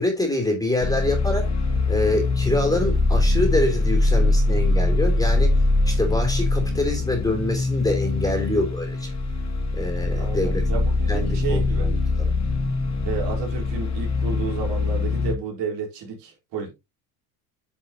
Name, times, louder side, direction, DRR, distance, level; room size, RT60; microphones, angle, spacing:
voice 1, 0.0-1.5 1.9-5.5 5.8-9.1 9.7-10.6 11.1-12.3, left 2 dB, 10° left, 3.3 m, -25 dB
sound 1, 0.8-15.4, left 2 dB, 35° left, 2.6 m, -22 dB
voice 2, 10.1-11.9 13.0-16.7, right 5 dB, 65° right, 4.2 m, -32 dB
10.0 x 5.7 x 2.9 m
cardioid pair, 125°, 45 cm